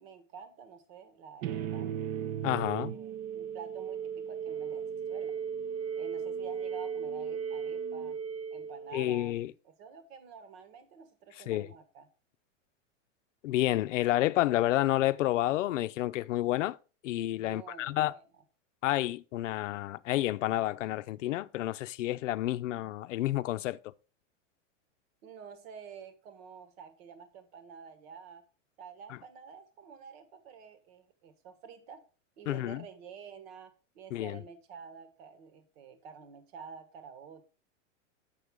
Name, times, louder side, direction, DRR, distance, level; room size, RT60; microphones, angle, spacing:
voice 1, 0.0-1.9 2.9-5.4 6.0-8.2 8.5-9.4 9.6-12.1 17.3-18.2 25.2-28.4 28.8-32.0 32.4-37.4, right 6 dB, 55° right, 1.5 m, -49 dB
sound 1, 1.4-9.3, right 7 dB, 30° right, 0.4 m, -36 dB
voice 2, 2.4-2.9 8.9-9.5 11.5-11.7 13.4-16.8 17.0-18.1 18.8-23.9 32.5-32.9 34.1-34.4, left 15 dB, 80° left, 0.6 m, -30 dB
8.0 x 6.9 x 3.5 m
supercardioid pair, 140°, 37 cm